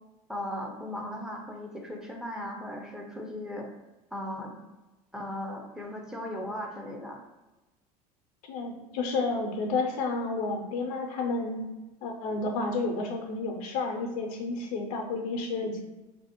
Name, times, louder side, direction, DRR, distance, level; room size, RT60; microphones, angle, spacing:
voice 1, 0.3-3.7 4.1-4.5 5.1-7.2, left 1 dB, 5° right, 0 dB, 0.4 m, -37 dB
voice 2, 8.5-11.7 12.0-15.8, left 3 dB, 70° left, 3 dB, 0.5 m, -31 dB
2.5 x 2.0 x 2.8 m, 1.1 s
hypercardioid pair, 75°, 20 cm